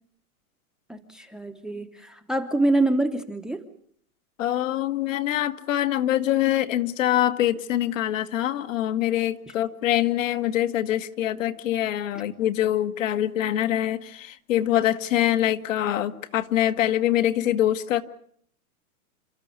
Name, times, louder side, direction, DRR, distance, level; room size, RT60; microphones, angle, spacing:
voice 1, 0.9-3.6, right 2 dB, ahead, 9 dB, 0.9 m, -25 dB
voice 2, 4.4-18.0, left 12 dB, 60° left, 9 dB, 1.7 m, -24 dB
29.0 x 13.0 x 9.6 m, 0.63 s
hypercardioid pair, 140°, 43 cm